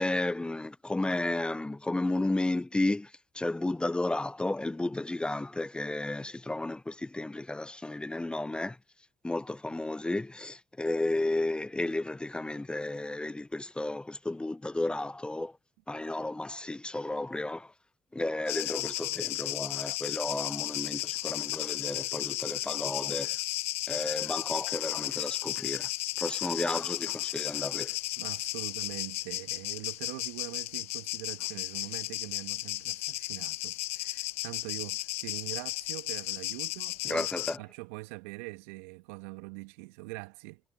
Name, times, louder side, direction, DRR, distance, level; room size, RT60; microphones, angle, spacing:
voice 1, 0.0-8.8 9.2-15.5 15.9-17.7 18.1-23.4 23.9-25.9 26.2-28.0 37.0-37.6, left 2 dB, 15° left, 0.5 m, -33 dB
sound 1, 18.5-37.6, left 19 dB, 80° left, 0.4 m, -34 dB
voice 2, 28.2-37.3 37.6-40.6, right 26 dB, 75° right, 1.7 m, -43 dB
hypercardioid pair, 50°, 7 cm